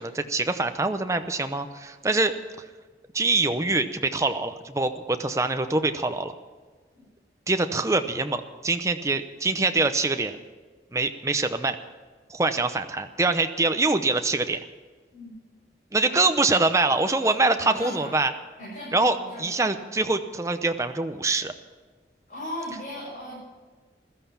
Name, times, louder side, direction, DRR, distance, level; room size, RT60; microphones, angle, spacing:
voice 1, 0.0-2.3 3.1-6.3 7.5-10.4 10.9-11.8 12.3-14.6 15.9-18.3 18.9-21.5, right 3 dB, 15° right, 8 dB, 0.7 m, -24 dB
voice 2, 17.2-18.1 18.6-19.6 22.3-23.3, left 1 dB, 50° left, -8 dB, 6.3 m, -38 dB
16.0 x 13.0 x 5.8 m, 1.4 s
head